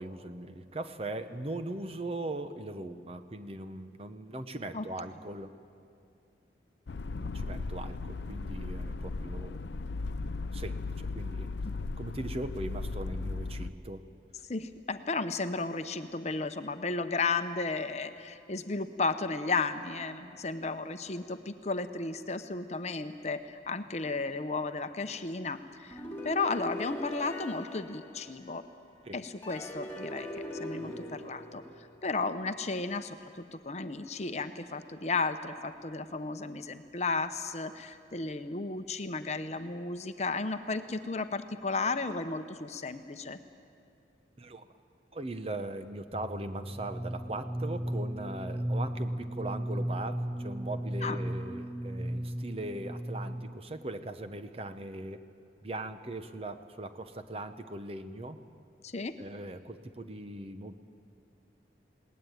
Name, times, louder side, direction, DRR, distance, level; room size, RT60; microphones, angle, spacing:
voice 1, 0.0-5.5 7.2-9.7 10.5-11.5 12.0-14.0 29.0-29.2 44.4-44.7 45.1-55.2 55.6-58.4 59.2-60.8, right 2 dB, 35° right, 9 dB, 0.9 m, -39 dB
sound 1, 6.9-13.7, left 3 dB, 75° left, 0.5 m, -36 dB
voice 2, 14.5-28.6 29.1-31.6 32.0-43.4 51.0-51.2 58.8-59.2, left 3 dB, 40° left, 9 dB, 0.8 m, -34 dB
sound 2, 25.9-28.8 29.4-32.3, left 1 dB, 15° left, 2.4 m, -41 dB
sound 3, 46.1-53.8, right 1 dB, 10° right, 0.5 m, -35 dB
21.0 x 18.5 x 9.2 m, 2.5 s
head